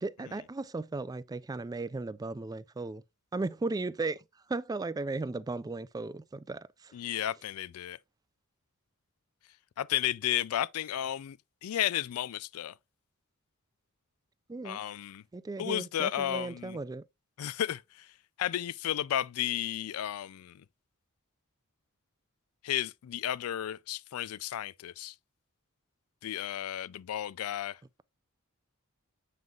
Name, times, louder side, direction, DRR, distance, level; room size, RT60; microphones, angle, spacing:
voice 1, 0.0-3.0 3.3-4.2 4.5-6.9 14.5-14.8 15.3-17.0, right 3 dB, 15° right, 0.3 m, -36 dB
voice 2, 6.9-8.0 9.8-12.7 14.6-15.2 15.6-16.8 17.4-18.1 18.4-20.6 22.6-25.1 26.2-27.8, left 11 dB, 80° left, 0.3 m, -33 dB
7.7 x 5.4 x 2.4 m
head